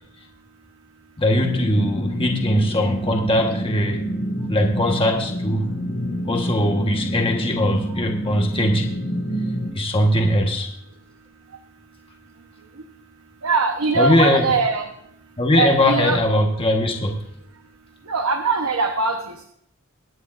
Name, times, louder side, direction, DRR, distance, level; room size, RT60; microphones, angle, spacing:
voice 1, 1.2-4.0 4.5-5.7 6.3-8.9 9.7-10.7 13.9-14.5 15.4-17.2, left 1 dB, 25° left, 1 dB, 1.3 m, -20 dB
sound 1, 1.3-9.7, equal, 55° left, 1.6 m, -27 dB
voice 2, 13.4-14.9 15.5-16.2 18.1-19.4, right 4 dB, 90° right, 4 dB, 1.1 m, -21 dB
23.5 x 9.8 x 2.6 m, 0.72 s
head